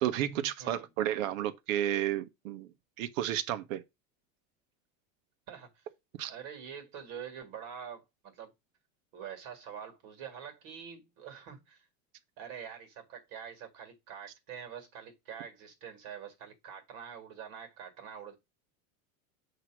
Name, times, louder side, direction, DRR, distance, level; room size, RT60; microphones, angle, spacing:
voice 1, 0.0-2.7 3.0-3.8 6.2-6.3, right 11 dB, 65° right, 1.0 m, -32 dB
voice 2, 0.6-0.9 5.5-5.9 6.3-8.5 9.1-11.9 12.4-18.3, right 8 dB, 50° right, 2.0 m, -45 dB
7.8 x 2.9 x 6.0 m
supercardioid pair, 160°, 42 cm